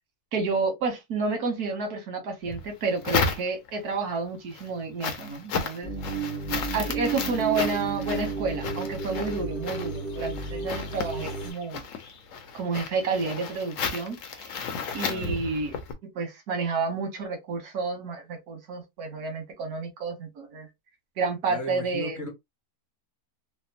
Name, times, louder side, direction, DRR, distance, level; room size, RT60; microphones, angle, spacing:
voice 1, 0.3-5.9 6.7-11.8 12.5-15.8 16.1-20.7 21.2-22.3, right 4 dB, 85° right, 1.5 m, -30 dB
sound 1, 2.4-3.9 4.3-15.9, left 5 dB, 65° left, 1.0 m, -33 dB
sound 2, 5.8-11.5, right 4 dB, 15° right, 0.8 m, -33 dB
voice 2, 15.0-15.5 21.5-22.3, left 1 dB, 15° left, 0.8 m, -36 dB
3.4 x 2.1 x 2.7 m
omnidirectional pair, 1.6 m